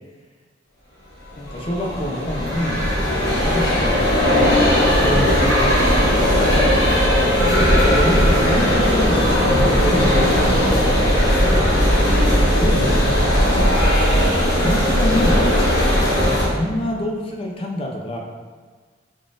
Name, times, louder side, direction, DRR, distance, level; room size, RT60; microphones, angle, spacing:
sound 1, 1.4-16.5, equal, 65° left, 1.3 m, -17 dB
voice 1, 1.4-4.7 5.0-6.1 7.2-9.4 9.7-12.1 12.5-13.6 14.5-15.4 16.2-18.2, left 1 dB, 30° left, 0 dB, 0.5 m, -27 dB
3.8 x 3.6 x 2.5 m, 1.5 s
head